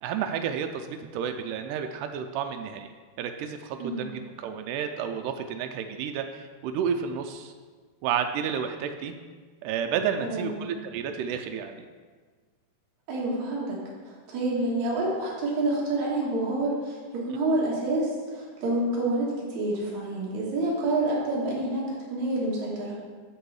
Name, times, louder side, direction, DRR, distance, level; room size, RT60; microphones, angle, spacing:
voice 1, 0.0-2.9 3.2-7.5 8.0-9.1 9.6-11.9, right 7 dB, 90° right, 6 dB, 2.1 m, -31 dB
voice 2, 10.2-10.6 13.1-13.8 14.0-23.0, right 2 dB, 65° right, -6 dB, 2.7 m, -28 dB
6.9 x 6.4 x 4.7 m, 1.5 s
omnidirectional pair, 3.6 m